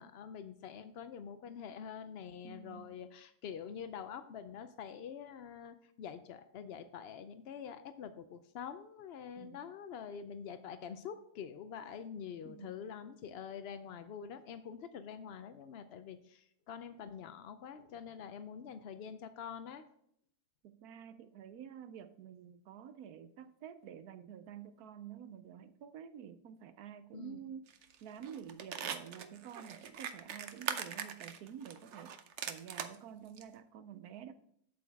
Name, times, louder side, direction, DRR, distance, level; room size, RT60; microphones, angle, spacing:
voice 1, 0.0-19.8 27.1-27.4, left 7 dB, 80° left, 0.5 m, -46 dB
voice 2, 2.4-2.9 9.4-9.6 12.4-12.8 20.6-27.7 28.0-32.2 32.5-34.3, right 9 dB, 75° right, 1.1 m, -49 dB
sound 1, 27.7-28.0 28.2-33.0 33.4-33.5, right 8 dB, 60° right, 0.8 m, -41 dB
8.0 x 7.8 x 3.4 m
omnidirectional pair, 1.7 m